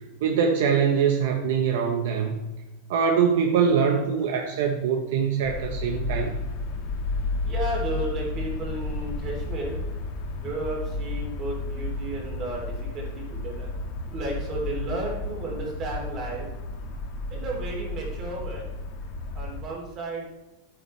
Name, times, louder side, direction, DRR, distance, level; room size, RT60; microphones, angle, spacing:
voice 1, 0.2-2.4 2.9-6.3, right 6 dB, 65° right, 3 dB, 1.1 m, -23 dB
sound 1, 5.4-19.6, left 2 dB, 40° left, 1.7 m, -32 dB
voice 2, 7.4-9.8 10.4-13.7 14.1-16.5 17.3-18.7 19.3-20.2, right 2 dB, 30° right, -2 dB, 3.4 m, -33 dB
11.5 x 9.2 x 3.4 m, 1.0 s
supercardioid pair, 165°, 0 cm